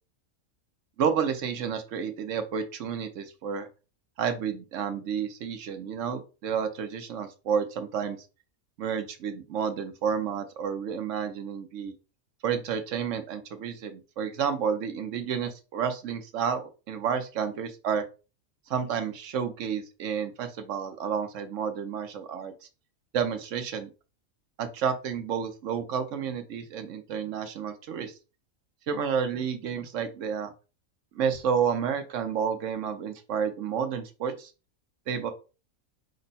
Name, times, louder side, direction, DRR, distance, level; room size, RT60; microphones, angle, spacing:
voice 1, 1.0-3.7 4.2-8.2 8.8-11.9 12.4-18.1 18.7-22.5 23.1-23.9 24.6-28.2 28.9-30.5 31.1-34.5 35.1-35.3, right 7 dB, 65° right, 8 dB, 1.0 m, -30 dB
5.3 x 2.1 x 4.0 m, 0.32 s
omnidirectional pair, 1.5 m